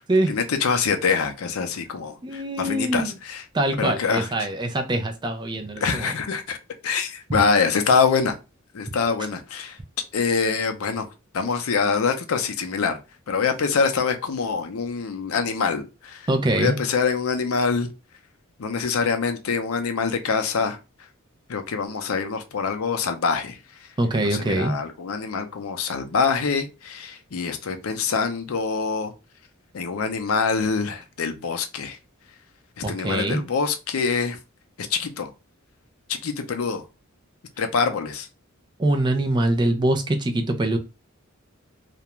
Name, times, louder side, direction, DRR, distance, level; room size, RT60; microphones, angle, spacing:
voice 1, 0.3-3.4 3.8-4.3 5.8-6.6 6.8-8.4 8.7-9.8 10.1-11.0 11.3-13.0 13.3-16.2 16.5-17.9 18.6-20.8 21.5-23.6 24.2-29.1 29.7-32.0 32.8-34.4 34.8-35.3 36.2-36.8 37.6-38.3, left 5 dB, 85° left, 0.5 m, -25 dB
voice 2, 2.2-3.1 3.5-6.1 7.3-7.4 16.3-16.8 24.0-24.7 32.8-33.4 38.8-40.8, right 1 dB, 20° right, 0.4 m, -23 dB
2.4 x 2.2 x 2.9 m
head